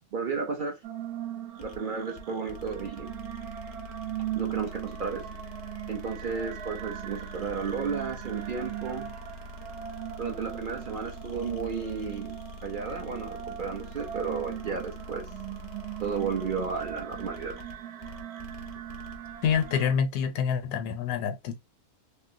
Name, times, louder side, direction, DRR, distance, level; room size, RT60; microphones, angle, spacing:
voice 1, 0.1-0.8 1.6-3.1 4.4-5.3 5.9-9.1 10.2-15.3 16.0-17.6, right 5 dB, 50° right, 0.6 m, -33 dB
sound 1, 0.8-19.9, right 11 dB, 80° right, 1.1 m, -39 dB
sound 2, 1.5-19.8, left 1 dB, 60° left, 0.3 m, -45 dB
voice 2, 19.4-21.6, left 7 dB, 80° left, 1.1 m, -27 dB
3.7 x 2.0 x 2.6 m
omnidirectional pair, 1.6 m